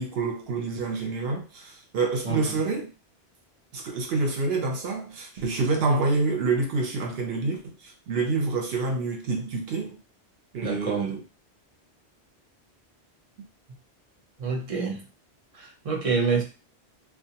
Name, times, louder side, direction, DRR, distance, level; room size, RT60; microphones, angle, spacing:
voice 1, 0.0-2.9 3.7-10.0 10.5-11.2, right 3 dB, 65° right, 0.8 m, -27 dB
voice 2, 10.6-11.1 14.4-15.1 15.5-16.4, right 5 dB, 40° right, 0.5 m, -27 dB
2.3 x 2.2 x 2.7 m
omnidirectional pair, 1.1 m